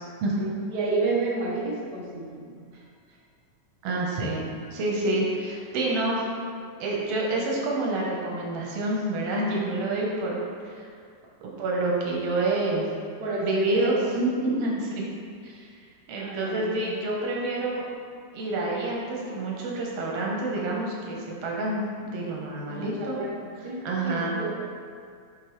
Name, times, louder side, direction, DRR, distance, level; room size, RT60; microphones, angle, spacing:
voice 1, 0.4-2.8 10.1-10.4 13.2-14.2 16.2-16.8 22.7-24.5, right 3 dB, 90° right, -5 dB, 0.8 m, -31 dB
voice 2, 3.8-4.4 4.7-6.2 6.8-10.4 10.8-10.9 11.4-12.9 13.4-15.0 15.4-15.6 16.1-17.8 18.3-23.2 23.8-24.4, right 2 dB, 65° right, -3 dB, 1.7 m, -28 dB
8.1 x 4.3 x 3.1 m, 2.2 s
omnidirectional pair, 3.5 m